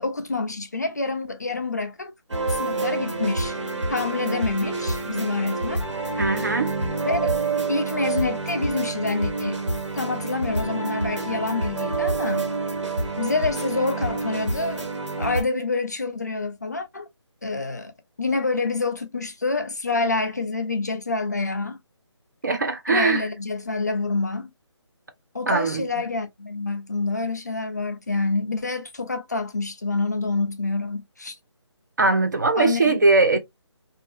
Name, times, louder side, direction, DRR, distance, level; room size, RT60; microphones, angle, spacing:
voice 1, 0.0-2.1 2.5-3.6 3.9-5.8 7.0-7.3 7.7-9.6 9.9-12.5 13.2-14.9 15.2-17.1 17.4-17.9 18.2-21.8 22.9-24.5 25.3-31.4 32.6-33.0 33.3-33.4, left 3 dB, 35° left, 0.4 m, -27 dB
sound 1, 2.3-15.4, right 3 dB, 80° right, 1.5 m, -27 dB
voice 2, 6.2-6.7 22.4-23.3 25.5-25.8 32.0-33.4, right 3 dB, 40° right, 0.4 m, -20 dB
2.7 x 2.3 x 2.3 m
figure-of-eight pair, 170°, 15 cm